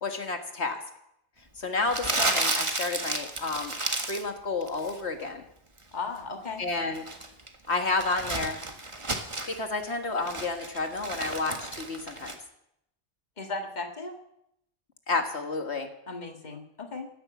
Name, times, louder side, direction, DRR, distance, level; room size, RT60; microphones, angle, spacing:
voice 1, 0.0-0.8 1.6-3.7 4.1-5.4 6.6-7.0 7.7-8.6 9.5-12.4 15.1-15.9, left 3 dB, 70° left, 5 dB, 1.9 m, -30 dB
Crumpling crinkling, 1.9-4.3 4.6-5.0 6.7-9.6 10.0-12.4, right 2 dB, 25° right, 1.6 m, -32 dB
voice 2, 5.9-6.6 13.4-14.2 16.1-17.1, left 3 dB, 40° left, 4 dB, 1.8 m, -36 dB
16.0 x 12.5 x 7.1 m, 0.78 s
omnidirectional pair, 1.2 m